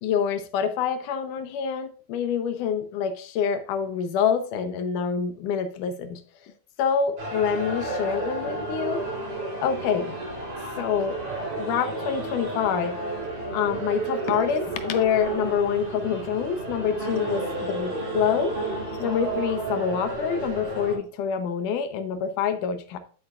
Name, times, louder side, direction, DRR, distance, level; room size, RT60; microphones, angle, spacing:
voice 1, 0.0-6.5 6.8-9.0 9.6-10.2 10.8-11.2 11.6-13.0 13.5-18.5 19.0-23.0, left 7 dB, 75° left, 9 dB, 2.2 m, -26 dB
sound 1, 7.2-21.0, right 2 dB, 75° right, 5.3 m, -32 dB
9.8 x 8.5 x 2.4 m, 0.43 s
omnidirectional pair, 3.9 m